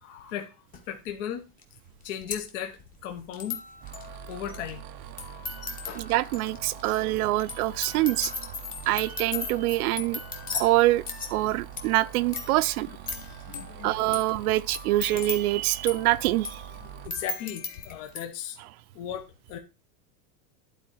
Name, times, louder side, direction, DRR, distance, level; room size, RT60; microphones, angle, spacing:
voice 1, 0.0-0.6 0.9-1.4 2.0-3.6 4.3-4.8 5.9-6.1 10.5-10.6 12.9-13.0 13.5-14.0 16.8-18.6 18.9-19.6, left 9 dB, 60° left, 1.2 m, -37 dB
sound 1, 0.7-0.8 1.6-1.7 1.9-18.2, left 4 dB, 20° left, 1.1 m, -38 dB
sound 2, 3.8-17.1, right 10 dB, 25° right, 0.4 m, -44 dB
voice 2, 6.0-8.3 8.9-10.2 10.5-11.0 11.3-12.9 13.8-16.6, right 17 dB, 80° right, 0.6 m, -25 dB
11.5 x 4.4 x 4.6 m
supercardioid pair, 165°, 43 cm